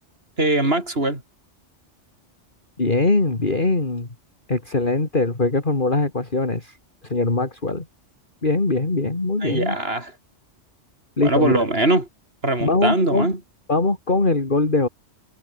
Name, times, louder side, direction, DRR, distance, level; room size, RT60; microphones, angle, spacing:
voice 1, 0.4-1.2 9.4-10.1 11.2-12.1 12.4-13.4, right 2 dB, 55° right, 5.5 m, -21 dB
voice 2, 2.8-4.1 4.5-6.7 7.0-7.8 8.4-9.8 11.2-11.6 12.6-13.3 13.7-14.9, left 2 dB, 45° left, 3.1 m, -21 dB
omnidirectional pair, 1.2 m